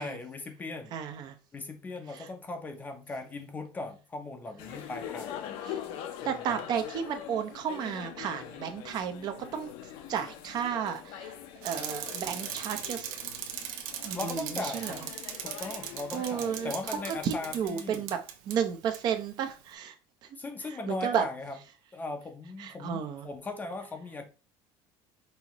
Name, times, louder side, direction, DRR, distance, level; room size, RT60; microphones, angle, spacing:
voice 1, 0.0-1.0 1.5-5.5 6.2-6.6 14.1-15.0 15.4-18.0 20.4-21.6 21.9-24.2, left 3 dB, 15° left, 0.6 m, -38 dB
voice 2, 0.9-1.4 2.1-2.3 5.6-5.8 6.2-9.7 10.1-11.3 11.6-13.1 14.0-14.9 16.1-16.7 17.1-18.2 18.5-20.0 20.2-20.3 20.9-21.2 22.6-23.3, right 8 dB, 40° right, 0.7 m, -33 dB
sound 1, 4.6-17.7, left 10 dB, 60° left, 0.7 m, -43 dB
Bicycle, 11.6-18.6 18.9-19.0, right 9 dB, 75° right, 0.8 m, -39 dB
5.5 x 2.7 x 2.9 m
cardioid pair, 160°, 10 cm